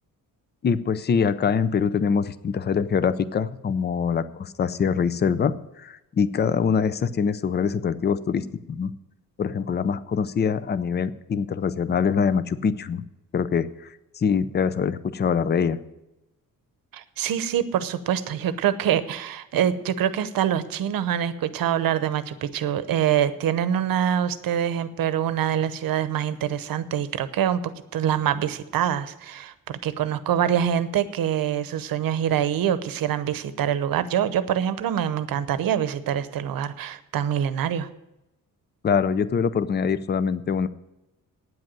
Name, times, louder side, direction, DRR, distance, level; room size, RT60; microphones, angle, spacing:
voice 1, 0.6-8.9 9.4-13.0 13.3-13.7 14.2-15.8 38.8-40.7, left 6 dB, 30° left, 15 dB, 0.5 m, -24 dB
voice 2, 16.9-37.9, right 9 dB, 90° right, 13 dB, 0.8 m, -25 dB
9.3 x 7.9 x 9.0 m, 0.94 s
wide cardioid pair, 145°, 34 cm